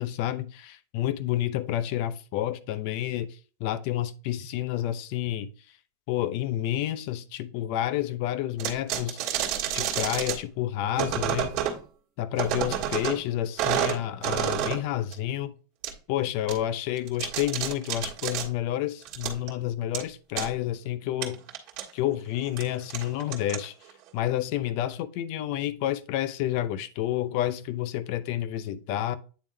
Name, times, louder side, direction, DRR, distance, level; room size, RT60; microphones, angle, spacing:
voice 1, 0.0-3.3 3.6-5.5 6.1-9.2 9.7-11.6 12.2-15.5 16.1-21.4 21.9-23.7 24.1-29.2, left 12 dB, 45° left, 0.5 m, -29 dB
sound 1, 8.6-10.4 10.9-11.8 12.3-13.2 13.6-14.8 15.1-15.2 15.8-15.9 16.5-16.6 17.0-18.5 19.0-19.5 19.9-20.0 20.4-20.5 21.2-21.8 22.4-22.6 22.9-23.9, right 10 dB, 40° right, 1.6 m, -29 dB
8.9 x 3.6 x 3.3 m
supercardioid pair, 165°, 0 cm